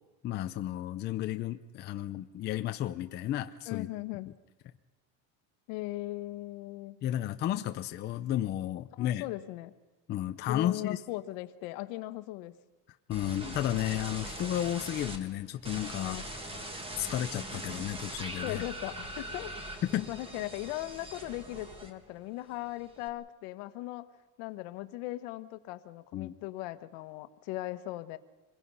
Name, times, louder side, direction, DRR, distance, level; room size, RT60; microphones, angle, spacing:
voice 1, 0.2-3.9 7.0-9.2 10.1-11.0 13.1-16.2 17.0-18.6 19.8-20.1 26.1-26.3, left 12 dB, 30° left, 7 dB, 0.6 m, -33 dB
voice 2, 3.7-4.3 5.7-7.0 9.0-9.7 10.5-12.6 15.9-16.2 18.4-19.5 20.1-24.1 24.4-28.2, left 17 dB, 65° left, 11 dB, 1.4 m, -38 dB
sound 1, 13.1-15.2 15.6-22.2 22.5-23.1, right 1 dB, 15° right, 2.0 m, -41 dB
26.5 x 21.5 x 5.6 m, 1.2 s
cardioid pair, 175°, 37 cm